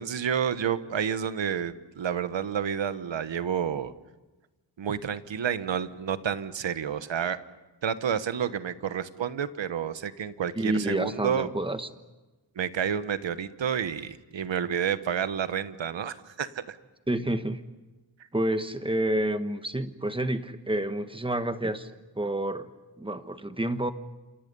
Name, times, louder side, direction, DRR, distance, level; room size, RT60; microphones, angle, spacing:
voice 1, 0.0-3.9 4.8-7.4 7.8-11.5 12.6-16.8, right 8 dB, 80° right, 12 dB, 1.3 m, -30 dB
voice 2, 10.6-11.9 17.1-17.6 18.3-22.7 23.0-23.9, right 1 dB, 10° right, 9 dB, 1.1 m, -29 dB
29.0 x 27.5 x 5.5 m, 1.1 s
wide cardioid pair, 165°, 44 cm